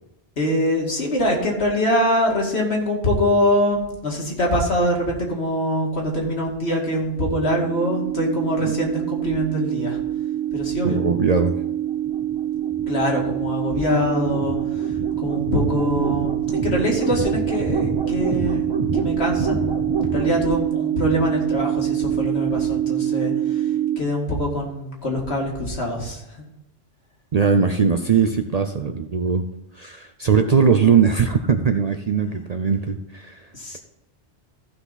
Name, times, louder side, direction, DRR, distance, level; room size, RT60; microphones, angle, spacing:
voice 1, 0.4-10.0 10.5-11.0 12.9-18.6 18.9-23.7 24.0-26.4 33.5-33.8, equal, 65° left, -1 dB, 2.4 m, -24 dB
sound 1, 7.1-24.0, right 9 dB, 25° right, 1.1 m, -24 dB
voice 2, 10.8-11.5 27.3-29.5 29.7-33.5, right 6 dB, 45° right, 6 dB, 0.5 m, -20 dB
15.0 x 5.8 x 4.0 m, 0.89 s
omnidirectional pair, 1.2 m